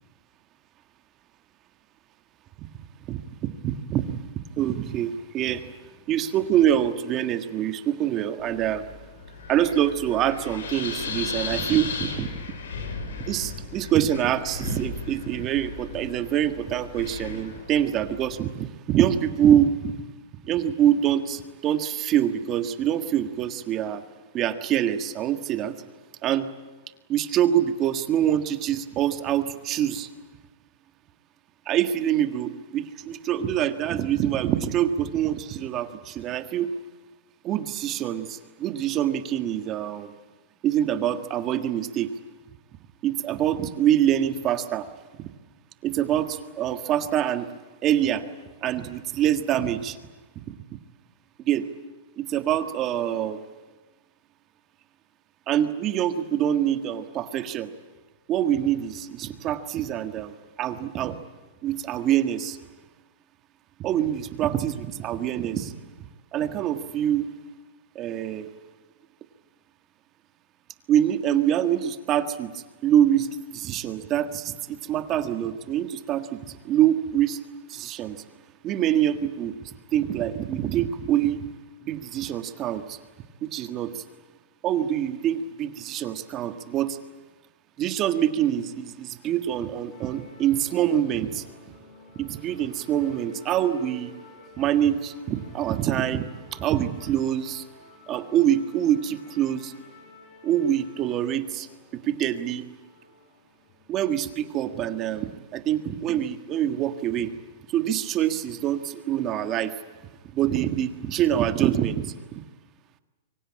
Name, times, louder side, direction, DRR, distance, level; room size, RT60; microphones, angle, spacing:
voice 1, 3.1-4.3 4.6-5.7 6.1-8.9 9.5-12.4 13.2-20.0 20.4-24.0 24.3-25.7 26.2-26.5 27.1-30.1 31.6-36.7 37.4-40.1 40.6-42.1 43.0-44.9 45.2-45.3 45.8-47.5 47.8-48.2 48.6-50.0 50.4-50.6 51.4-51.7 52.2-53.4 55.5-57.7 58.3-61.2 61.6-62.6 63.8-65.7 66.3-67.3 67.9-68.5 70.9-77.4 77.7-78.2 78.6-79.5 79.9-81.4 81.8-83.0 83.4-84.0 84.6-87.0 87.8-91.5 92.1-94.1 94.6-97.6 98.1-99.7 100.4-102.6 103.9-107.3 107.7-109.7 110.3-112.4, right 10 dB, 25° right, 9 dB, 1.6 m, -25 dB
Wind, 8.4-18.5, left 4 dB, 80° left, 5.8 m, -36 dB
sound 1, 89.9-104.4, left 3 dB, 40° left, 7.1 m, -51 dB
25.5 x 24.0 x 8.7 m, 1.2 s
supercardioid pair, 155°, 0 cm